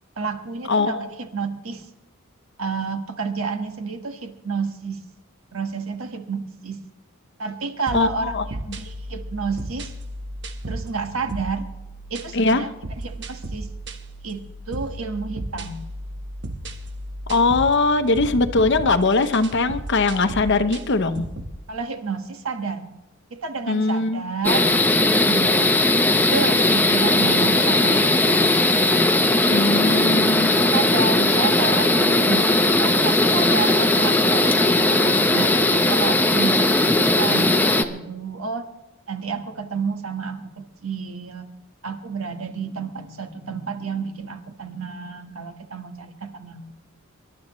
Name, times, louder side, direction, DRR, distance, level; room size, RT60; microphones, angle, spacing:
voice 1, 0.2-1.9 2.6-5.0 5.5-6.8 7.4-9.9 10.7-11.7 12.1-12.7 13.0-13.7 14.2-15.8 21.2-21.3 21.7-22.9 23.3-24.7 25.0-25.8 26.3-28.6 30.7-35.5 35.9-38.7 39.1-41.5 41.8-46.7, right 4 dB, 75° right, 6 dB, 1.4 m, -30 dB
voice 2, 0.7-1.1 7.9-8.4 12.3-12.7 17.3-21.2 23.7-24.2 29.5-30.5, left 3 dB, 60° left, 10 dB, 0.9 m, -21 dB
sound 1, 7.9-21.6, right 1 dB, 55° right, 1.3 m, -35 dB
sound 2, 24.4-37.8, left 2 dB, 10° left, 0.8 m, -18 dB
25.5 x 12.0 x 3.1 m, 0.99 s
head